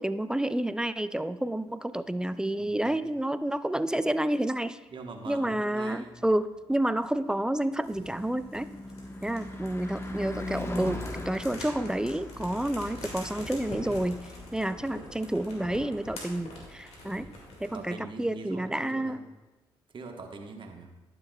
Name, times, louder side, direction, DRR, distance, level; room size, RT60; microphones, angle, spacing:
voice 1, 0.0-4.8 5.3-8.7 9.2-11.0 11.3-14.3 14.5-17.3 17.6-19.2, right 1 dB, 5° right, 13 dB, 0.4 m, -29 dB
voice 2, 2.6-3.0 4.9-6.2 9.2-9.5 17.1-17.4 17.7-19.2 19.9-20.9, right 3 dB, 45° right, 3 dB, 1.2 m, -43 dB
Car passing by / Truck / Engine, 6.6-16.8, left 1 dB, 20° left, 1.1 m, -41 dB
sound 1, 7.8-17.9, left 1 dB, 65° left, 2.2 m, -45 dB
11.5 x 6.8 x 2.3 m, 1.1 s
hypercardioid pair, 50°, 12 cm